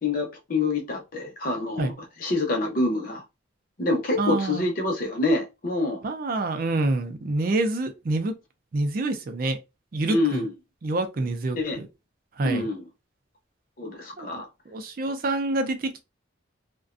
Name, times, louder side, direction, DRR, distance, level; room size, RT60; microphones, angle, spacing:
voice 1, 0.0-1.9 2.2-3.2 3.8-6.0 10.1-10.5 11.5-11.8 12.4-12.9 13.8-14.5, left 2 dB, 45° left, 0.7 m, -26 dB
voice 2, 4.2-4.7 6.0-8.4 8.7-9.6 9.9-10.5 10.8-11.9 12.4-12.7 14.2-14.4 14.7-16.0, right 2 dB, 45° right, 0.4 m, -27 dB
2.4 x 2.1 x 2.4 m
head